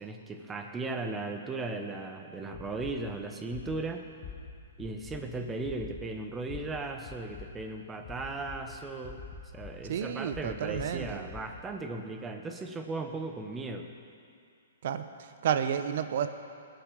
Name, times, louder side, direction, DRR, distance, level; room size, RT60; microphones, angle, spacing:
voice 1, 0.0-4.0 4.8-9.2 9.5-13.9, right 3 dB, 15° right, 5 dB, 1.3 m, -37 dB
sound 1, 2.5-2.9 3.5-3.8 4.2-4.3 4.8-5.2 5.6-6.0 6.5-6.6 7.0-7.4 8.0-8.6 9.0-9.7 10.3-11.4, left 6 dB, 40° left, 2.3 m, -43 dB
voice 2, 9.9-11.3 14.8-16.3, right 8 dB, 60° right, 10 dB, 1.0 m, -31 dB
21.0 x 9.0 x 5.5 m, 2.4 s
hypercardioid pair, 135°, 0 cm